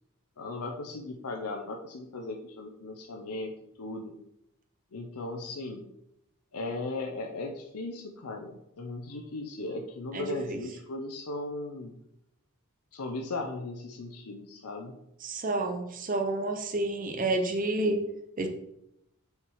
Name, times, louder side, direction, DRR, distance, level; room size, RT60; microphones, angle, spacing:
voice 1, 0.4-3.5 3.8-4.1 4.9-5.8 6.5-11.9 12.9-15.0, left 2 dB, 90° left, 3 dB, 0.7 m, -37 dB
voice 2, 10.1-10.6 15.2-18.0 18.4-18.5, right 2 dB, 35° right, 4 dB, 0.7 m, -29 dB
5.8 x 4.6 x 4.7 m, 0.82 s
head